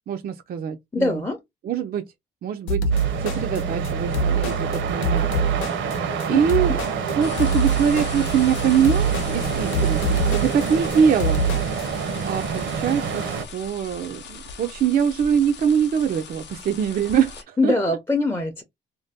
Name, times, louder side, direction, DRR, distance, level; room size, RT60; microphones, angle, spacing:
voice 1, 0.1-1.2 1.6-2.0 2.4-2.8 3.2-5.2 6.3-6.7 7.1-11.4 12.3-18.0, right 8 dB, 50° right, 0.4 m, -23 dB
voice 2, 0.9-1.4 6.3-6.4 6.7-6.8 17.6-18.6, left 2 dB, 10° left, 0.6 m, -23 dB
sound 1, 2.7-11.9, right 3 dB, 90° left, 0.8 m, -24 dB
sound 2, 2.9-13.4, right 5 dB, 70° right, 0.8 m, -28 dB
sound 3, 7.2-17.4, left 5 dB, 60° left, 0.7 m, -39 dB
2.6 x 2.2 x 3.4 m
cardioid pair, 90°, 20 cm